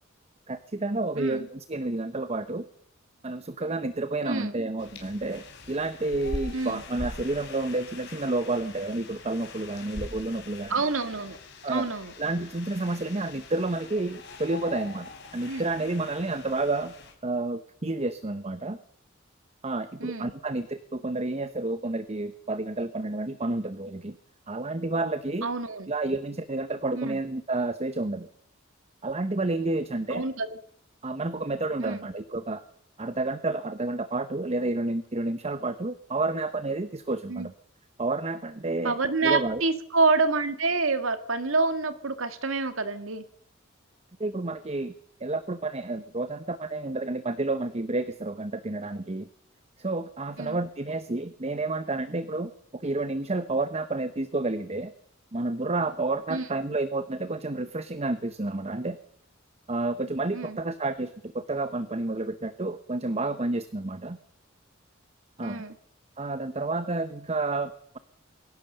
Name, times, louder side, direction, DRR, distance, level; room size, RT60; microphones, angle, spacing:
voice 1, 0.5-2.7 3.2-10.7 11.6-11.9 12.2-16.9 17.2-18.8 19.6-24.2 24.5-25.5 25.9-28.3 29.0-30.3 31.0-32.6 33.0-37.5 38.0-39.6 44.2-44.9 45.2-49.3 49.8-54.9 55.3-59.0 59.7-64.2 65.4-65.6 66.2-68.0, right 2 dB, 30° right, 12 dB, 0.9 m, -30 dB
voice 2, 1.2-1.5 4.3-4.6 6.5-6.8 10.7-11.4 11.7-12.1 15.5-15.6 20.0-20.3 25.4-25.9 27.0-27.2 30.1-30.6 31.8-32.1 37.3-37.5 38.8-43.2 50.4-50.6 56.3-56.5 60.3-60.6 65.4-65.7, right 3 dB, 75° right, 10 dB, 1.8 m, -27 dB
sound 1, 4.8-17.1, left 2 dB, 55° left, 4.7 m, -43 dB
22.5 x 17.5 x 6.7 m, 0.69 s
head